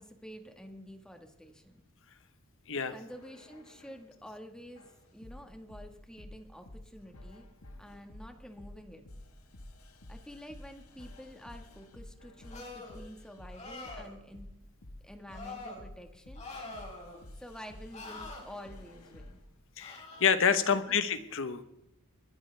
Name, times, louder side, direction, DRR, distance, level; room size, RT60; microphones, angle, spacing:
voice 1, 0.0-1.8 2.9-4.8 5.1-7.5 7.8-9.0 10.1-14.5 15.0-16.4 17.4-19.4 20.6-21.0, equal, 5° left, 5 dB, 1.7 m, -49 dB
sound 1, 3.1-4.1 4.7-19.4 20.1-20.5, left 1 dB, 90° left, 1.5 m, -51 dB
sound 2, 12.5-13.0 13.5-14.1 15.3-15.8 16.3-17.2 17.9-18.4 19.8-20.3, left 2 dB, 35° left, 4.7 m, -44 dB
voice 2, 19.8-21.6, left 7 dB, 65° left, 11 dB, 1.2 m, -28 dB
21.5 x 13.5 x 3.5 m, 0.88 s
head